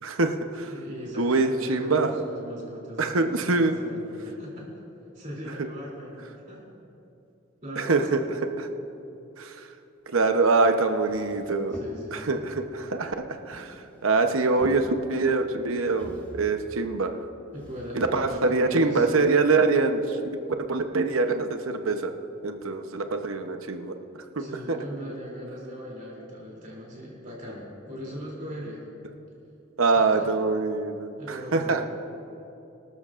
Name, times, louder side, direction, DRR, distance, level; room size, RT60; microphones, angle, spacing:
voice 1, 0.0-0.7 1.2-2.2 3.0-3.8 5.6-5.7 7.8-8.2 8.6-8.7 9.4-9.7 10.1-11.8 12.1-13.7 14.0-17.3 17.9-20.2 20.7-22.2 22.4-23.9 24.4-24.8 29.8-31.8, right 3 dB, 85° right, 6 dB, 0.9 m, -24 dB
voice 2, 0.7-4.7 5.1-6.7 7.6-8.3 11.7-12.4 17.5-19.1 24.4-28.8 29.9-30.3 31.2-31.9, equal, 40° right, -4 dB, 3.0 m, -39 dB
sound 1, 10.9-12.3 13.4-14.2 14.4-15.3 15.9-16.5 17.5-18.5 19.1-19.2, equal, 10° left, 2.8 m, -44 dB
24.5 x 13.0 x 2.5 m, 2.8 s
head